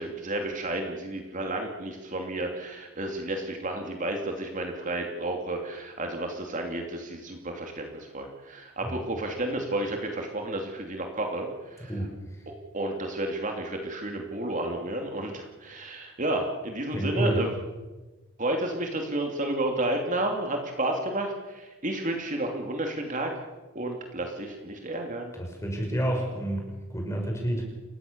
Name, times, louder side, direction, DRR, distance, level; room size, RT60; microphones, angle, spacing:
voice 1, 0.0-11.5 11.8-11.9 12.7-17.5 18.4-23.3 23.7-25.3, right 1 dB, 35° right, 3 dB, 2.8 m, -31 dB
voice 2, 16.9-17.4 25.4-27.6, right 1 dB, 15° left, 1 dB, 5.8 m, -29 dB
29.0 x 16.0 x 6.9 m, 1.2 s
head